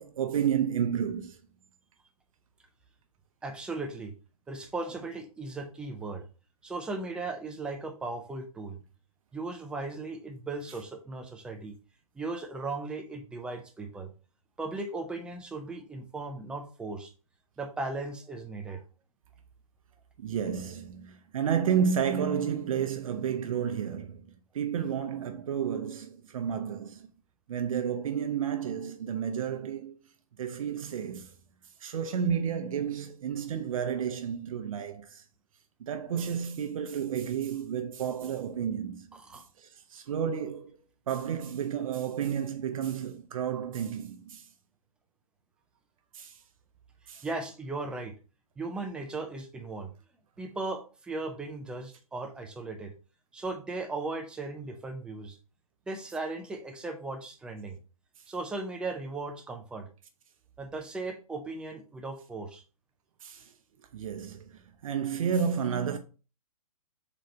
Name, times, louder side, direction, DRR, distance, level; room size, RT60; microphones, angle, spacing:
voice 1, 0.0-1.3 20.2-24.2 24.5-27.1 27.5-29.9 30.4-31.3 31.8-35.2 35.8-39.1 39.9-40.7 41.1-44.4 46.1-46.3 47.1-47.2 63.2-63.4 63.9-66.0, right 8 dB, 65° right, 0.6 m, -31 dB
voice 2, 3.4-4.1 4.5-6.3 6.6-8.8 9.3-11.8 12.2-14.1 14.6-17.1 17.6-18.8 39.1-39.4 47.2-48.1 48.6-49.9 50.4-52.9 53.3-55.4 55.9-57.8 58.3-59.9 60.6-62.6, right 3 dB, 5° right, 0.4 m, -37 dB
3.9 x 3.2 x 4.1 m
hypercardioid pair, 140°, 19 cm